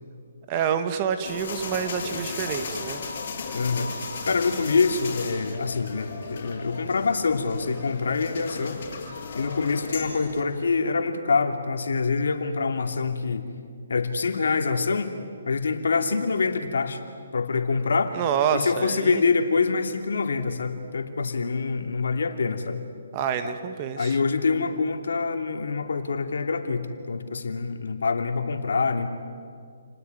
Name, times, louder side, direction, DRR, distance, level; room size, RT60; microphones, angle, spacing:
voice 1, 0.5-3.0 18.1-19.2 23.1-24.2, right 8 dB, 30° right, 8 dB, 1.7 m, -27 dB
sound 1, 1.2-10.4, left 4 dB, 50° left, 6.5 m, -35 dB
voice 2, 3.5-4.0 4.2-8.8 9.3-13.4 13.9-15.1 15.4-17.0 17.3-18.2 18.5-22.8 23.4-23.5 24.0-29.1, left 4 dB, 75° left, 6 dB, 2.7 m, -25 dB
29.0 x 19.5 x 9.6 m, 2.2 s
hypercardioid pair, 155°, 0 cm